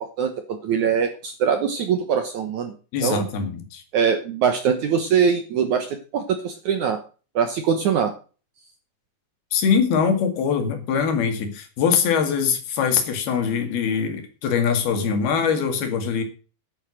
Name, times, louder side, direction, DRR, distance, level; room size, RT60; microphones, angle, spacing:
voice 1, 0.2-2.7 3.0-3.3 3.9-7.0 7.4-8.1, right 7 dB, 65° right, 7 dB, 2.0 m, -22 dB
voice 2, 2.9-3.8 9.5-16.2, left 6 dB, 70° left, 6 dB, 4.0 m, -22 dB
11.0 x 9.3 x 6.3 m, 0.37 s
omnidirectional pair, 4.7 m